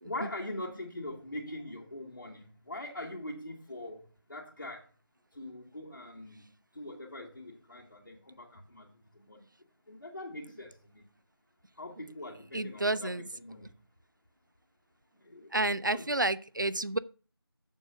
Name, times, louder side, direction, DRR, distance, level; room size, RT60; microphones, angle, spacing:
voice 1, 0.0-4.8 5.3-8.9 9.1-9.4 9.9-11.0 11.8-13.8 15.2-15.5 15.9-16.0, left 1 dB, 50° left, 2.0 m, -42 dB
voice 2, 12.5-13.3 15.5-17.0, right 2 dB, 50° right, 0.5 m, -30 dB
7.2 x 7.2 x 5.9 m
figure-of-eight pair, 170°, 13 cm